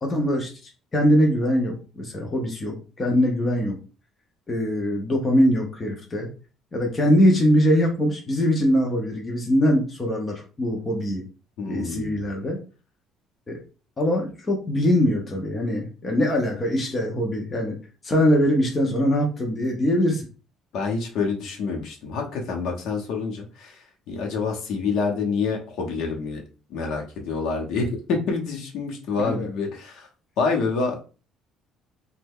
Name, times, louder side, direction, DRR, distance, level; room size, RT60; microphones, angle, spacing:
voice 1, 0.0-3.8 4.5-6.3 6.7-11.2 11.7-12.6 13.5-13.6 14.0-17.8 18.0-20.3 29.2-29.5, equal, 15° left, 0 dB, 0.5 m, -22 dB
voice 2, 11.6-12.3 20.7-26.4 26.7-30.1 30.4-31.0, left 4 dB, 55° left, 2 dB, 0.8 m, -27 dB
3.2 x 2.2 x 3.5 m, 0.34 s
cardioid pair, 180°, 0 cm